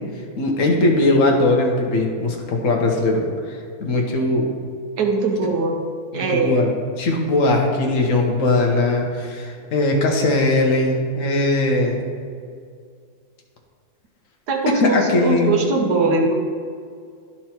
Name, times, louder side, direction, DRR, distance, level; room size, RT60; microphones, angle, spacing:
voice 1, 0.4-3.2 3.5-4.5 6.1-12.0 14.8-15.6, left 2 dB, 60° left, 0 dB, 1.4 m, -20 dB
voice 2, 5.0-5.8 6.1-6.6 14.5-16.3, right 2 dB, 80° right, 2 dB, 1.5 m, -21 dB
11.0 x 4.5 x 4.4 m, 2.2 s
omnidirectional pair, 1.6 m